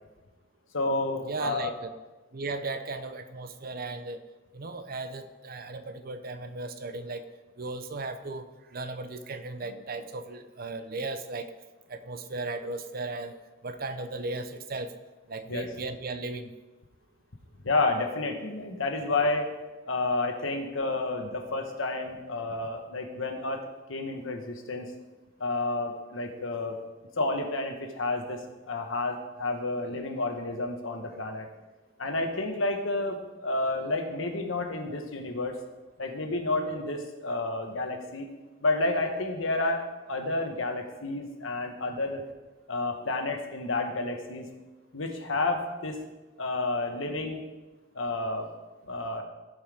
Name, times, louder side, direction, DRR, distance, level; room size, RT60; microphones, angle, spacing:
voice 1, 0.7-1.7 9.7-9.8 15.5-15.6 17.6-19.5 19.9-23.6 23.9-24.9 25.4-26.8 27.2-31.5 32.0-35.5 36.0-38.3 38.6-42.2 42.7-44.5 44.9-46.0 46.4-47.4 47.9-48.5 48.9-49.2, left 2 dB, 80° left, 4 dB, 1.3 m, -30 dB
voice 2, 1.2-1.9 2.3-4.2 4.5-7.3 7.6-11.5 11.9-13.4 13.6-14.9 15.3-16.5, right 3 dB, 50° right, 9 dB, 0.7 m, -36 dB
16.0 x 5.6 x 3.6 m, 1.1 s
head